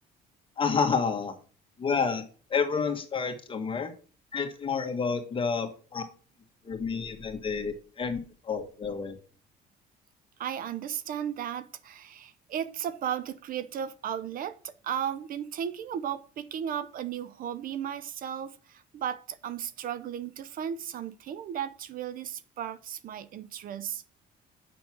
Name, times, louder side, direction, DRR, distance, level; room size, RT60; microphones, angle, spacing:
voice 1, 0.6-1.3 1.8-3.9 4.3-6.0 6.6-8.2 8.4-9.2, left 5 dB, 30° left, 1.7 m, -29 dB
voice 2, 10.4-24.0, right 9 dB, 55° right, 0.6 m, -35 dB
7.0 x 6.2 x 5.9 m
cardioid pair, 110°, 17 cm